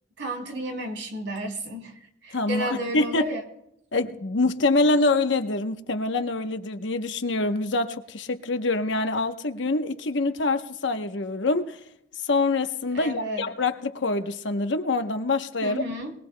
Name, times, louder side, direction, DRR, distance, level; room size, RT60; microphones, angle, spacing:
voice 1, 0.2-1.9 2.2-3.4 12.9-13.5 15.6-16.1, right 1 dB, 70° right, 3.0 m, -32 dB
voice 2, 2.3-3.2 3.9-11.8 12.2-15.8, left 2 dB, 70° left, 0.9 m, -25 dB
22.0 x 19.5 x 2.2 m
head